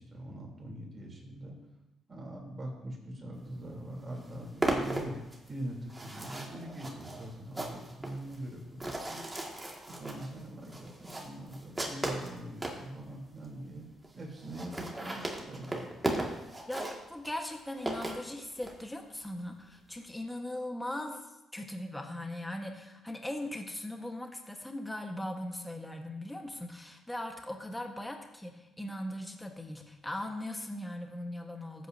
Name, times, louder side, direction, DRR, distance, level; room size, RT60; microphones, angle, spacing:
voice 1, 0.0-1.6 2.1-5.2 5.5-9.2 10.0-13.9 14.1-15.9, right 1 dB, 35° right, -1 dB, 3.3 m, -42 dB
sound 1, 3.6-3.7 4.0-12.8 13.4-13.5 13.7-13.8 14.0-14.1 14.4-18.8, right 1 dB, 15° right, 2.0 m, -37 dB
voice 2, 16.7-31.9, left 1 dB, 10° left, 3 dB, 1.3 m, -39 dB
14.5 x 8.5 x 2.7 m, 0.96 s
cardioid pair, 90°, 0 cm